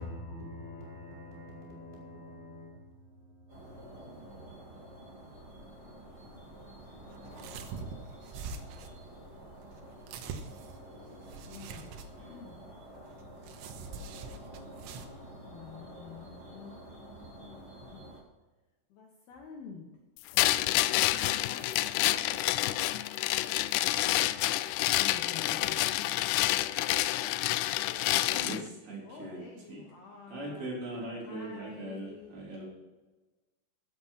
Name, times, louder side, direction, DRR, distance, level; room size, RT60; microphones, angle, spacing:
voice 1, 0.0-2.9 3.4-4.2, left 1 dB, 15° left, 4.0 m, -45 dB
sound 1, 3.5-18.2, right 1 dB, 10° right, 2.4 m, -49 dB
sound 2, 6.1-15.1, right 5 dB, 85° right, 3.5 m, -45 dB
voice 2, 11.3-12.7 15.4-18.1 18.9-19.9 20.9-22.5 24.8-26.1 27.7-28.5 29.0-32.3, left 5 dB, 65° left, 2.8 m, -49 dB
sound 3, 20.4-28.6, left 16 dB, 90° left, 3.1 m, -28 dB
voice 3, 28.3-29.4 29.7-29.8 30.3-32.6, right 1 dB, 55° right, 5.3 m, -40 dB
14.5 x 7.9 x 5.8 m
omnidirectional pair, 5.6 m